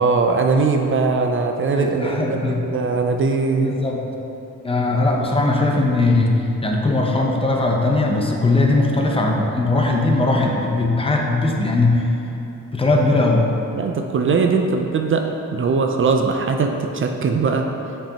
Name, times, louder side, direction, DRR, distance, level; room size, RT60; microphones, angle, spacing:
voice 1, 0.0-3.7 13.7-17.7, right 4 dB, 40° right, 4 dB, 0.4 m, -20 dB
voice 2, 1.7-2.6 3.6-4.1 4.6-6.4 6.6-12.1 12.7-13.4, left 2 dB, 15° left, 0 dB, 0.7 m, -19 dB
7.2 x 5.3 x 2.8 m, 3.0 s
cardioid pair, 125°, 32 cm